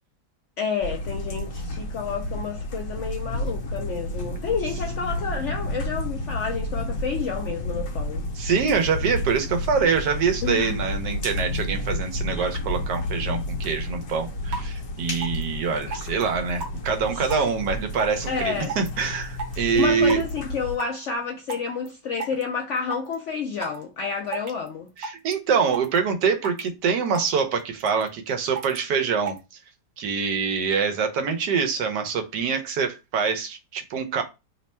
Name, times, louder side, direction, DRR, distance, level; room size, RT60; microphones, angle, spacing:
voice 1, 0.6-8.2 10.4-10.8 17.1-17.4 18.3-18.7 19.7-24.9, left 6 dB, 70° left, 0.7 m, -30 dB
sound 1, 0.8-20.8, left 1 dB, 55° left, 1.1 m, -31 dB
voice 2, 8.3-20.2 25.0-29.4 30.0-34.2, right 5 dB, 85° right, 1.3 m, -25 dB
sound 2, 14.0-14.1 14.5-14.7 15.2-15.4 15.9-16.2 16.6-16.9 17.3-17.5 18.0-18.2 18.6-19.0 19.4-19.6 20.1-20.3 20.8-21.0 21.5-21.9 22.2-22.4 22.8-23.1 23.6-23.8 24.3-24.7 25.0-25.3 25.7-26.0 26.4-26.7 27.1-27.3 27.6-28.1 28.6-28.8 29.3-29.4, right 4 dB, 65° right, 1.3 m, -32 dB
3.3 x 2.1 x 4.2 m
omnidirectional pair, 1.8 m